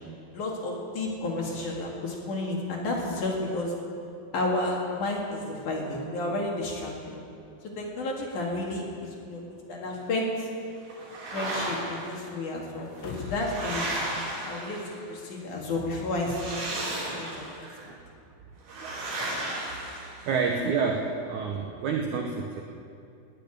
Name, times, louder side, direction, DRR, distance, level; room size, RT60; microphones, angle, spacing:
voice 1, 0.3-3.7 4.3-7.2 7.8-9.4 9.7-10.5 11.3-13.9 14.4-16.6 17.0-17.5, left 2 dB, 55° left, -2 dB, 3.1 m, -31 dB
sound 1, 10.9-12.2 13.0-15.1 16.2-17.6 18.7-20.6, right 1 dB, 65° right, 5.4 m, -34 dB
sound 2, 12.8-13.7 14.0-14.1, left 5 dB, 85° left, 3.3 m, -39 dB
voice 2, 17.3-18.0 18.6-19.1 20.2-22.6, right 5 dB, 90° right, 2 dB, 1.7 m, -30 dB
17.5 x 7.0 x 10.0 m, 2.5 s
omnidirectional pair, 4.8 m